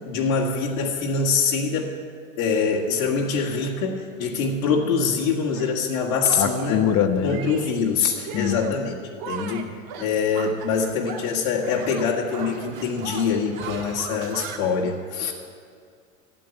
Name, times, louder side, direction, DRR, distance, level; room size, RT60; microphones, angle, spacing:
voice 1, 0.0-2.0 2.4-6.8 7.2-9.0 9.3-9.7 10.0-15.3, left 5 dB, 80° left, -4 dB, 2.0 m, -24 dB
Shatter, 5.5-5.7 6.2-6.8 7.3-7.8 8.2-8.8 9.2-11.4 11.6-14.6, right 7 dB, 55° right, 1.5 m, -37 dB
voice 2, 6.4-7.4 8.3-8.8, left 8 dB, 50° left, 7 dB, 1.1 m, -23 dB
12.5 x 7.7 x 9.0 m, 2.2 s
hypercardioid pair, 100°, 41 cm